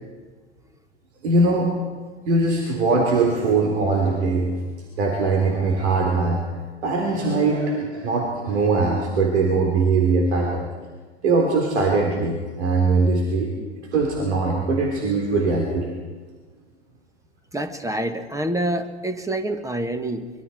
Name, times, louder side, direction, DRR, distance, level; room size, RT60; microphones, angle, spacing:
voice 1, 1.2-1.7 2.3-4.5 5.0-6.4 6.8-10.7 11.2-13.5 13.9-16.0, right 3 dB, 70° right, 0 dB, 3.9 m, -21 dB
voice 2, 17.5-20.3, right 1 dB, 10° right, 9 dB, 1.7 m, -27 dB
25.0 x 23.0 x 4.6 m, 1.4 s
figure-of-eight pair, 90°, 34 cm